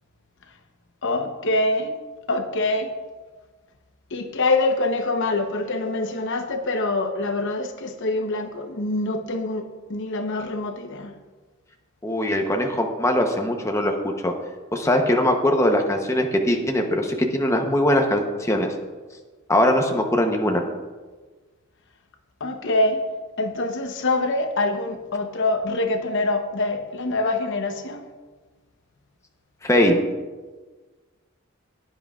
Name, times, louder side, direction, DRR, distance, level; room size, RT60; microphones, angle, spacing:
voice 1, 1.0-2.0 2.3-3.0 4.1-11.1 22.4-23.0 23.4-28.1, left 2 dB, 60° left, 6 dB, 0.9 m, -25 dB
voice 2, 12.0-13.9 14.2-14.3 14.7-18.7 19.5-20.6 29.6-30.0, left 1 dB, 15° left, 3 dB, 0.8 m, -21 dB
15.5 x 9.9 x 2.4 m, 1.3 s
head